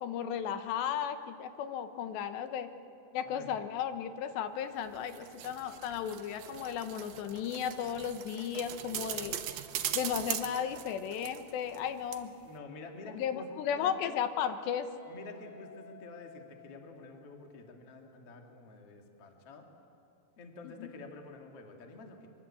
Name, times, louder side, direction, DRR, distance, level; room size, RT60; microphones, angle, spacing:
voice 1, 0.0-2.7 3.1-9.4 9.9-12.3 13.0-14.9 20.8-20.9, left 8 dB, 75° left, 9 dB, 3.1 m, -35 dB
sound 1, 4.9-11.9 12.1-12.2, right 11 dB, 70° right, 2.3 m, -40 dB
voice 2, 12.4-13.9 15.1-19.7 20.4-22.3, left 3 dB, 40° left, 3 dB, 2.6 m, -49 dB
Guitar, 15.0-17.8, left 7 dB, 20° left, 6.5 m, -55 dB
24.0 x 23.5 x 8.6 m, 2.7 s
omnidirectional pair, 5.2 m